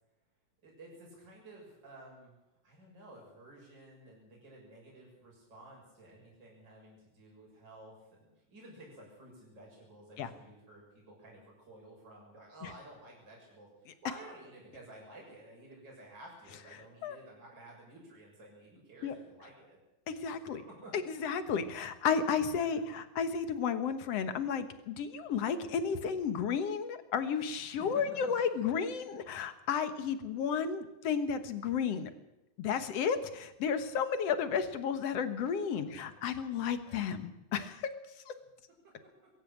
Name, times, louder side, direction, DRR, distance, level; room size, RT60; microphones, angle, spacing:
voice 1, 0.6-19.8 20.3-20.9 22.5-22.8 27.8-28.6 35.7-36.2 36.8-37.1 38.8-39.3, right 1 dB, 35° right, -2 dB, 7.0 m, -53 dB
voice 2, 20.1-20.6 20.9-32.1 32.6-37.9 38.3-38.4, left 6 dB, 60° left, 10 dB, 2.3 m, -33 dB
22.5 x 13.5 x 8.7 m, 0.96 s
omnidirectional pair, 3.3 m